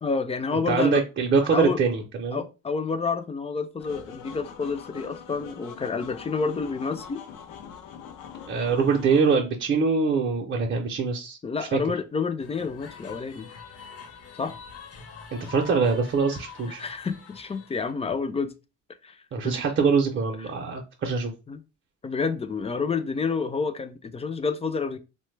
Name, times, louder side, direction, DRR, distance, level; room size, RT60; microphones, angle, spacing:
voice 1, 0.0-1.0 1.5-1.8 2.3-7.2 11.4-13.5 14.4-14.5 16.8-18.5 19.0-19.6 21.5-21.6 22.0-25.0, left 5 dB, 20° left, 0.4 m, -29 dB
voice 2, 0.5-2.4 8.5-11.4 11.7-11.8 15.3-16.8 19.3-21.3, right 5 dB, 40° right, 0.6 m, -24 dB
sound 1, 3.8-9.3, left 7 dB, 90° left, 0.6 m, -43 dB
sound 2, 12.4-17.9, left 5 dB, 50° left, 0.7 m, -45 dB
2.9 x 2.2 x 3.2 m
cardioid pair, 90°, 30 cm